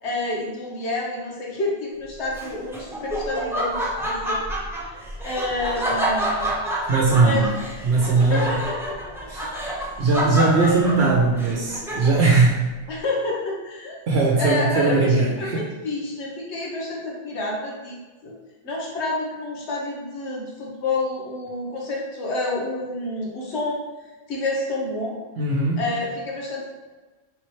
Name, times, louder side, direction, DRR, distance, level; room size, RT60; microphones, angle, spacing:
voice 1, 0.0-4.4 4.7-6.4 7.1-7.5 8.2-8.9 9.2-9.3 10.5-10.9 12.9-14.0 14.4-17.9 18.2-18.4 18.6-23.8 24.3-25.2 25.8-26.7, left 2 dB, 85° left, -3 dB, 1.2 m, -29 dB
Laughter, 2.3-12.4, right 1 dB, 5° right, 0.4 m, -28 dB
voice 2, 6.9-7.5 7.8-8.6 9.3-9.5 10.0-12.7 14.1-15.6 25.4-25.8, right 3 dB, 70° right, -3 dB, 0.9 m, -19 dB
4.4 x 3.5 x 3.1 m, 1.2 s
omnidirectional pair, 1.1 m